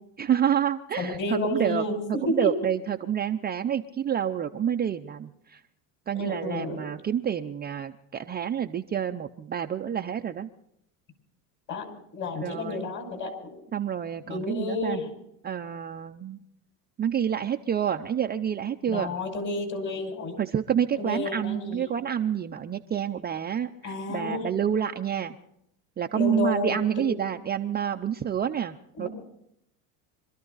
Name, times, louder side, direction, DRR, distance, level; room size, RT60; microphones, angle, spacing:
voice 1, 0.2-1.8 2.3-5.6 6.1-10.5 12.4-12.9 13.7-15.0 15.4-16.4 17.0-19.1 20.4-25.3 26.0-29.1, right 9 dB, 20° right, 5 dB, 0.5 m, -28 dB
voice 2, 1.0-2.5 6.1-6.8 11.7-11.9 12.1-13.3 14.3-15.1 18.9-20.4 21.0-21.8 23.8-24.5 26.1-27.1 29.0-29.1, left 2 dB, 40° left, 4 dB, 5.5 m, -30 dB
25.5 x 13.5 x 4.0 m, 0.76 s
supercardioid pair, 105°, 46 cm